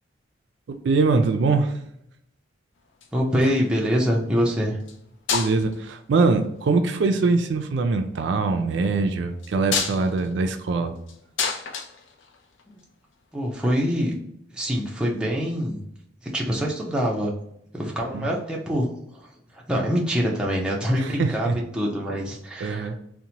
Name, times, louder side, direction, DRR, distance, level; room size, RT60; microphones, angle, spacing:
voice 1, 0.7-1.7 5.3-11.0 18.1-18.3 21.0-21.6 22.6-23.0, right 3 dB, 70° right, 6 dB, 0.3 m, -23 dB
sound 1, 2.8-3.7 4.8-5.0 5.3-5.9 6.9-7.3 9.4-12.8 14.1-14.2, left 5 dB, 75° left, 0.4 m, -30 dB
voice 2, 3.1-4.8 12.7-12.8 13.3-14.1 14.5-15.8 16.2-17.3 17.7-19.3 19.5-22.9, equal, 5° right, -3 dB, 0.5 m, -25 dB
2.9 x 2.1 x 2.7 m, 0.76 s
head